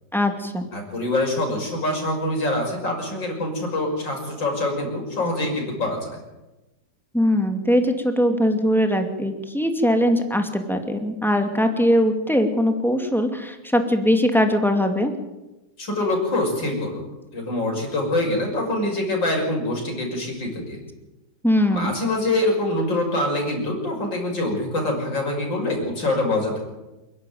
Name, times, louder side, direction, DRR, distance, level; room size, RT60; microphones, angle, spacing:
voice 1, 0.1-0.7 7.1-15.1 21.4-21.9, equal, ahead, 5 dB, 2.3 m, -21 dB
voice 2, 0.7-6.2 15.8-17.1 17.3-20.8 21.7-26.6, left 1 dB, 70° left, 1 dB, 6.7 m, -25 dB
28.0 x 11.5 x 9.3 m, 1.0 s
omnidirectional pair, 2.1 m